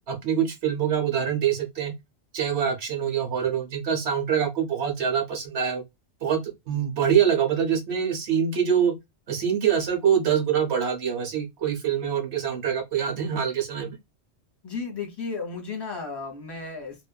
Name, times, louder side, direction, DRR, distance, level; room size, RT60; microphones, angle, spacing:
voice 1, 0.1-1.9 2.3-5.8 6.2-8.9 9.3-14.0, right 8 dB, 70° right, 1.1 m, -25 dB
voice 2, 14.6-17.1, left 4 dB, 20° left, 1.0 m, -34 dB
2.5 x 2.3 x 2.3 m
omnidirectional pair, 1.2 m